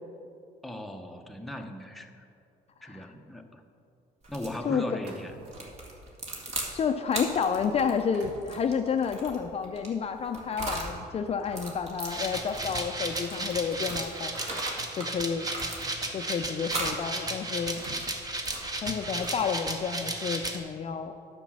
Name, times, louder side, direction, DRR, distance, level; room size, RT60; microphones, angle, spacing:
voice 1, 0.6-2.2 2.8-3.6 4.3-5.3, left 1 dB, ahead, 3 dB, 0.8 m, -38 dB
sound 1, 4.2-4.6 5.5-6.7 7.1-10.9 11.4-15.1 15.4-16.2 16.7-17.0 17.5-19.7, right 2 dB, 40° right, 2.0 m, -38 dB
voice 2, 4.6-5.0 6.7-14.3 15.0-15.5 16.1-17.8 18.8-21.1, left 6 dB, 35° left, 6 dB, 0.5 m, -30 dB
sound 2, 4.8-5.8 6.4-6.6 7.2-7.3 7.7-8.5 10.2-11.5 12.6-12.7 13.0-14.1 14.9-16.4 17.3-18.2, right 2 dB, 90° right, 1.4 m, -50 dB
sound 3, 12.1-20.6, right 2 dB, 20° right, 1.1 m, -34 dB
9.7 x 6.9 x 6.1 m, 2.5 s
cardioid pair, 110°, 17 cm